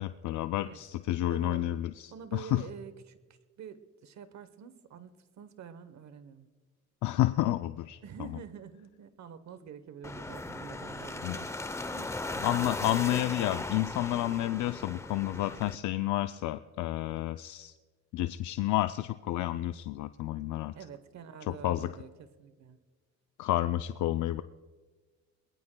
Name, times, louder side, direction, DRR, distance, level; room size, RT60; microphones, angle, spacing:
voice 1, 0.0-2.6 7.0-8.4 11.2-11.4 12.4-17.7 18.1-20.7 21.5-21.9 23.4-24.4, left 15 dB, 75° left, 11 dB, 0.5 m, -30 dB
voice 2, 1.3-1.7 2.1-3.2 3.6-6.5 8.0-11.6 11.9-12.4 20.7-22.8, right 8 dB, 65° right, 12 dB, 1.0 m, -47 dB
sound 1, 10.0-15.7, left 2 dB, 10° left, 0.6 m, -37 dB
22.5 x 21.0 x 2.2 m, 1.4 s
cardioid pair, 90°, 30 cm